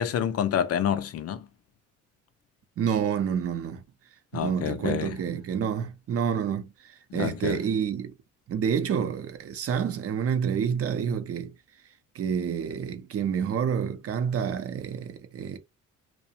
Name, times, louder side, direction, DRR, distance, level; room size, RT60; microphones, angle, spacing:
voice 1, 0.0-1.5 4.3-5.1 7.1-7.6, left 9 dB, 55° left, 0.4 m, -28 dB
voice 2, 2.8-3.8 4.3-8.1 8.5-11.5 12.1-15.6, right 7 dB, 50° right, 0.5 m, -28 dB
2.4 x 2.0 x 2.7 m
cardioid pair, 90°, 30 cm